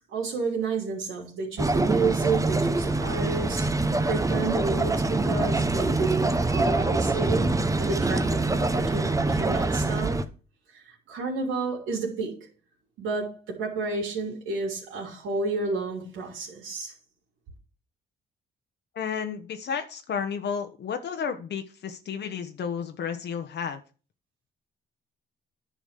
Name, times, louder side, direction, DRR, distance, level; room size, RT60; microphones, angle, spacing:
voice 1, 0.1-3.7 4.0-10.2 10.7-12.4 13.0-16.9, right 4 dB, 90° right, 3.3 m, -31 dB
sound 1, 1.6-10.2, right 2 dB, 15° right, 0.9 m, -25 dB
voice 2, 18.9-23.8, left 7 dB, 60° left, 1.1 m, -32 dB
10.5 x 4.9 x 6.7 m
cardioid pair, 90°, 20 cm